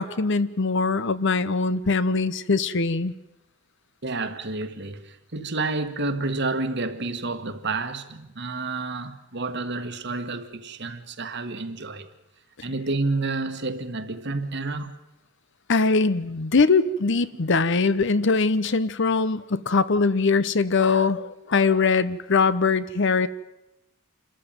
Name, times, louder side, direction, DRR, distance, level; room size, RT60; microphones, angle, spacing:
voice 1, 0.0-3.1 15.7-23.3, left 4 dB, 60° left, 0.8 m, -22 dB
voice 2, 4.0-12.1 12.6-14.9, right 3 dB, 55° right, 1.5 m, -29 dB
27.0 x 14.0 x 9.0 m
head